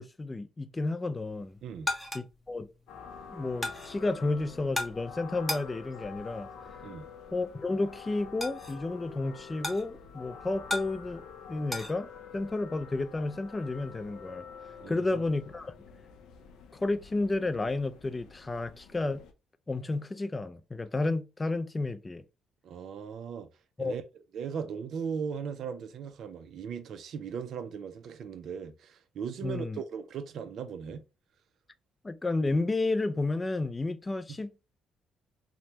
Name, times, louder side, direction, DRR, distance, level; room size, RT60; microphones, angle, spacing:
voice 1, 0.0-1.6 2.1-2.7 3.3-6.5 7.3-14.5 14.9-15.7 16.7-19.2 19.7-22.2 23.8-23.9 29.4-29.8 32.0-34.5, left 2 dB, 20° left, 0.4 m, -31 dB
sound 1, 1.3-11.9, left 1 dB, ahead, 0.8 m, -39 dB
sound 2, 2.9-19.3, left 6 dB, 85° left, 0.5 m, -48 dB
voice 2, 14.8-15.2 22.6-23.5 23.8-24.1 24.3-31.0 34.3-34.4, right 6 dB, 70° right, 0.4 m, -38 dB
3.1 x 2.1 x 2.8 m
cardioid pair, 90°, 0 cm